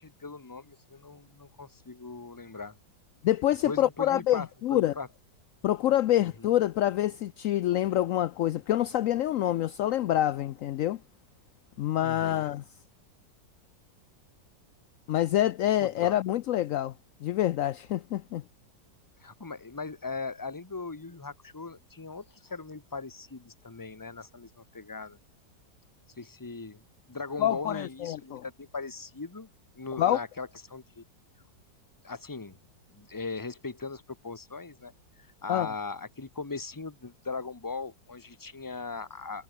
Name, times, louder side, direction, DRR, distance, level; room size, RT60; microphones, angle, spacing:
voice 1, 0.0-2.8 3.6-5.1 6.2-6.5 12.0-12.5 15.8-16.1 19.2-25.2 26.2-26.8 27.1-29.5 29.7-31.0 32.0-32.6 32.9-34.9 35.2-39.4, left 4 dB, 15° left, 1.1 m, -39 dB
voice 2, 3.2-4.9 5.6-11.0 11.8-12.6 15.1-16.9 17.2-18.4 27.4-28.4 30.0-30.2 35.5-35.7, left 12 dB, 80° left, 0.7 m, -26 dB
omnidirectional pair, 2.0 m